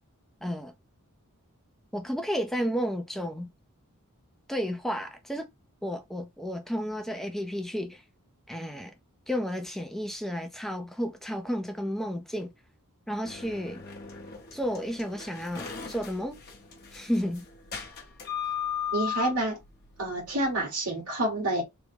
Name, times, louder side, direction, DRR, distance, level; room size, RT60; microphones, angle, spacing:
voice 1, 0.4-0.7 1.9-3.5 4.5-5.5 5.8-8.0 8.5-9.0 9.3-12.5 13.1-13.8 14.5-16.4 16.9-17.4, equal, ahead, 0.4 m, -32 dB
sound 1, 13.2-20.6, left 8 dB, 45° left, 0.8 m, -37 dB
voice 2, 18.9-19.6 20.0-21.6, right 1 dB, 85° right, 1.7 m, -28 dB
3.4 x 2.1 x 3.4 m
head